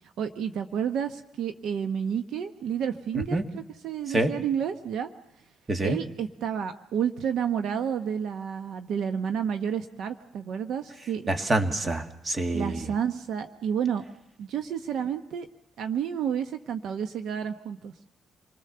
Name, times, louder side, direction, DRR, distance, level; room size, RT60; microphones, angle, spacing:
voice 1, 0.2-5.1 5.8-11.3 12.5-14.0 14.4-15.5 15.8-17.9, right 8 dB, 75° right, 9 dB, 1.0 m, -30 dB
voice 2, 5.7-6.0 11.3-12.8, right 2 dB, 30° right, 7 dB, 2.0 m, -26 dB
27.5 x 20.5 x 6.8 m, 0.85 s
cardioid pair, 90°, 0 cm